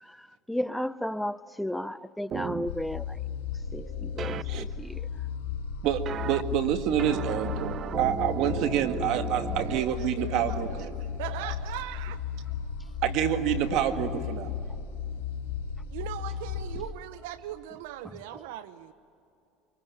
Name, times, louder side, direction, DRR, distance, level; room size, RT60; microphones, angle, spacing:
voice 1, 0.0-3.2 3.7-5.1 13.7-14.2 18.3-18.4, left 1 dB, 5° left, 0.6 m, -34 dB
sound 1, 2.3-2.7 4.2-4.4 6.1-6.4 7.0-9.8, right 8 dB, 45° right, 0.7 m, -35 dB
sound 2, 2.7-16.9, left 7 dB, 85° left, 3.2 m, -35 dB
voice 2, 5.8-10.9 11.3-11.5 13.0-14.5, right 10 dB, 65° right, 1.9 m, -28 dB
voice 3, 9.6-10.9 11.2-12.2 15.9-18.9, right 13 dB, 80° right, 0.8 m, -40 dB
25.0 x 23.0 x 9.2 m
supercardioid pair, 95°, 0 cm